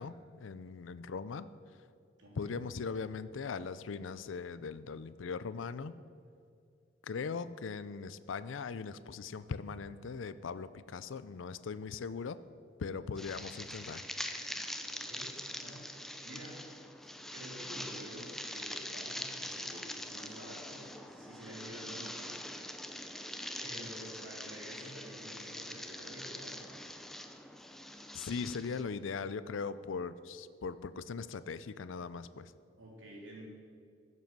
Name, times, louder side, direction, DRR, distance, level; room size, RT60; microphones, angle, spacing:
voice 1, 0.0-1.5 2.4-6.0 7.0-12.4 12.8-14.0 28.1-32.5, left 5 dB, 75° left, 14 dB, 0.5 m, -40 dB
voice 2, 2.2-2.6 14.9-15.9 16.2-16.7 17.2-22.4 23.6-26.6 32.8-33.5, equal, 75° right, -3 dB, 3.4 m, -49 dB
sound 1, 13.2-28.8, left 1 dB, ahead, 0.6 m, -43 dB
14.5 x 7.5 x 6.1 m, 2.3 s
head